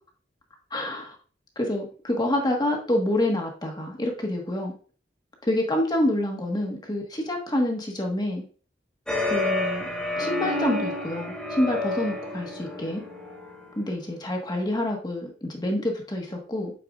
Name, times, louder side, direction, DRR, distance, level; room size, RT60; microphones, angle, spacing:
voice 1, 0.7-1.1 1.6-4.7 5.5-8.4 9.3-9.9 10.2-13.0 13.8-16.7, left 1 dB, 25° left, 2 dB, 1.4 m, -27 dB
sound 1, 9.1-13.7, left 2 dB, 5° left, 1.8 m, -29 dB
8.8 x 4.7 x 2.4 m, 0.40 s
head